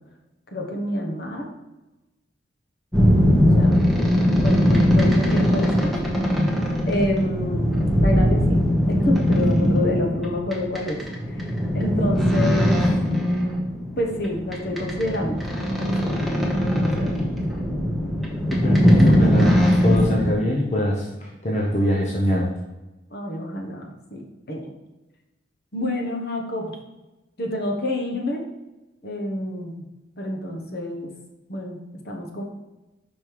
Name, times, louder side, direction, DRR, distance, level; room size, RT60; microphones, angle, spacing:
voice 1, 0.5-1.5 3.3-3.8 4.4-6.0 6.9-11.0 11.3-11.4 11.7-12.8 14.0-16.3 16.7-17.2 23.1-24.6 25.7-26.7 27.4-28.5 29.0-29.9 30.2-31.1 31.5-31.8 32.0-32.4, left 1 dB, 55° left, 1 dB, 1.1 m, -28 dB
sound 1, 2.9-20.3, equal, ahead, 1.0 m, -20 dB
voice 2, 18.5-21.1 21.4-22.5, left 1 dB, 35° left, -2 dB, 0.8 m, -23 dB
5.4 x 5.2 x 4.7 m, 1.0 s
head